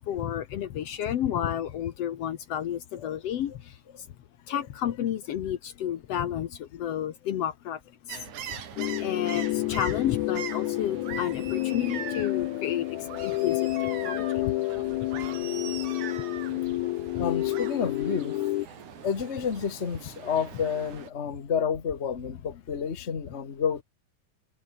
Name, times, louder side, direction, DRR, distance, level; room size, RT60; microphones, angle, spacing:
voice 1, 0.1-3.5 4.5-7.8 9.0-12.9 13.2-13.7 14.0-14.3 14.8-14.9 17.2-17.3, left 10 dB, 65° left, 2.0 m, -31 dB
sound 1, 8.1-21.1, right 8 dB, 85° right, 3.7 m, -41 dB
sound 2, 8.8-18.7, left 18 dB, 90° left, 2.0 m, -30 dB
voice 2, 17.2-18.4 19.0-23.8, left 7 dB, 30° left, 1.4 m, -30 dB
omnidirectional pair, 3.3 m